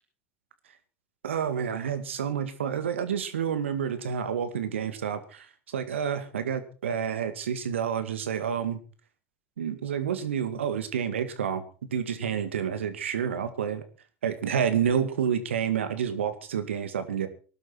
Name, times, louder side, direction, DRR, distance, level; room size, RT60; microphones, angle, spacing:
voice 1, 1.2-8.8 9.6-13.8 14.2-17.3, right 8 dB, 85° right, 10 dB, 2.1 m, -29 dB
19.0 x 12.0 x 4.7 m, 0.37 s
hypercardioid pair, 80°, 6 cm